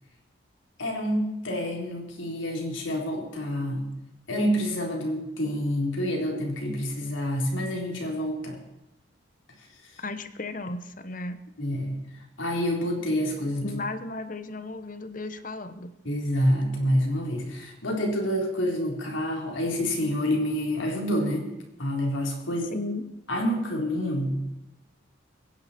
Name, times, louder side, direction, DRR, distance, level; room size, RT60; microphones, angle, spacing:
voice 1, 0.8-3.9 4.3-8.6 11.6-12.0 12.4-13.7 16.0-21.5 21.8-22.7 23.3-24.5, equal, 85° left, 0 dB, 3.9 m, -27 dB
voice 2, 10.0-11.4 13.6-15.9 22.7-23.0, left 2 dB, 45° left, 11 dB, 1.0 m, -35 dB
23.5 x 10.5 x 4.4 m, 0.97 s
head